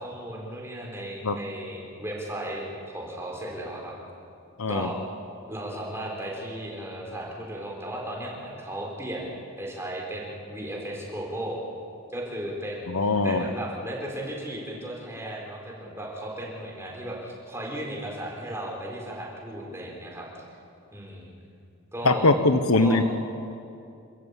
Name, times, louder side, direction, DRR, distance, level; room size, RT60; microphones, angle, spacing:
voice 1, 0.0-3.9 4.7-5.0 5.5-11.6 12.1-20.4 20.9-21.3 21.9-22.3 22.8-23.0, right 1 dB, 10° right, -2 dB, 4.3 m, -35 dB
voice 2, 12.9-13.4 22.0-23.0, left 2 dB, 85° left, 10 dB, 1.2 m, -21 dB
26.5 x 14.5 x 8.4 m, 2.5 s
head